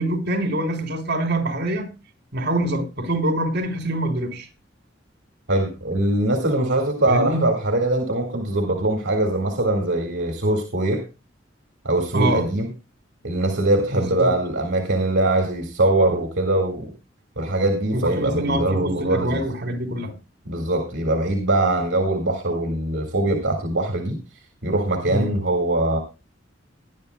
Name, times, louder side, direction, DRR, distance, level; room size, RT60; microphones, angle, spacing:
voice 1, 0.0-1.9 2.3-4.5 7.1-7.4 12.1-12.5 13.9-14.3 17.9-20.1 25.1-25.3, right 1 dB, 60° right, 3.5 m, -25 dB
voice 2, 5.5-11.0 11.8-12.7 13.2-16.9 17.4-19.4 20.5-24.2 24.6-26.0, right 1 dB, 75° right, 2.0 m, -22 dB
19.5 x 11.0 x 2.3 m
head